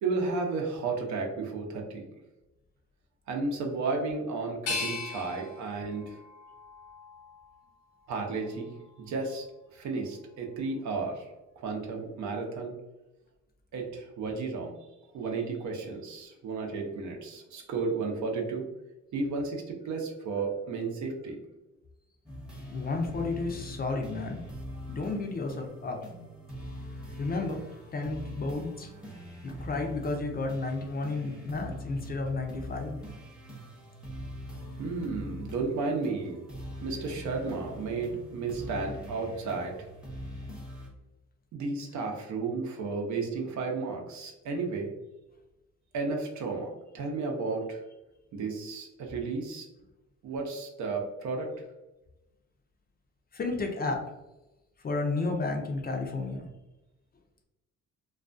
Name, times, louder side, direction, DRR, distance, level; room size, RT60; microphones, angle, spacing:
voice 1, 0.0-2.0 3.3-6.2 8.1-8.7 9.0-9.5 9.7-11.3 11.6-12.8 13.7-14.7 15.1-18.6 19.1-21.4 34.8-36.4 36.8-39.8 41.5-44.9 45.9-46.7 46.9-47.8 48.3-49.7 50.2-51.6, right 4 dB, 70° right, 1 dB, 0.7 m, -33 dB
sound 1, 4.7-7.6 8.1-8.9, left 4 dB, 80° left, 0.9 m, -39 dB
sound 2, 22.3-40.9, equal, 5° right, 0.7 m, -42 dB
voice 2, 22.7-24.4 24.9-26.0 27.2-28.9 29.4-33.0 53.3-54.0 54.8-56.5, left 3 dB, 30° left, 2 dB, 0.5 m, -32 dB
2.3 x 2.2 x 2.5 m, 1.0 s
cardioid pair, 90°, 30 cm